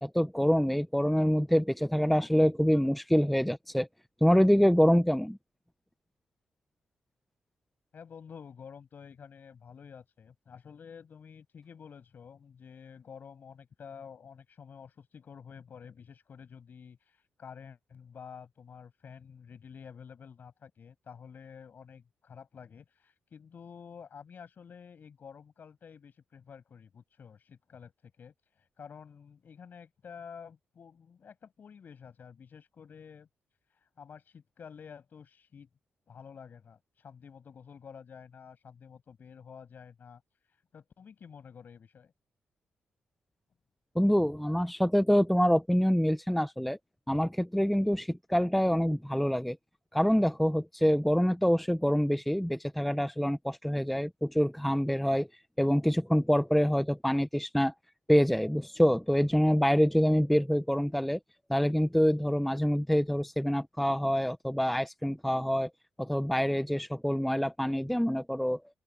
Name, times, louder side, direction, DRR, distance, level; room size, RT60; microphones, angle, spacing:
voice 1, 0.0-3.9 4.2-5.4 43.9-46.8 47.1-49.6 49.9-55.3 55.6-57.7 58.1-61.2 61.5-65.7 66.0-68.6, equal, ahead, 0.9 m, -26 dB
voice 2, 7.9-33.3 33.7-35.7 36.1-40.2 40.5-42.1, left 6 dB, 55° left, 7.1 m, -50 dB
open air
cardioid pair, 90°, 4 cm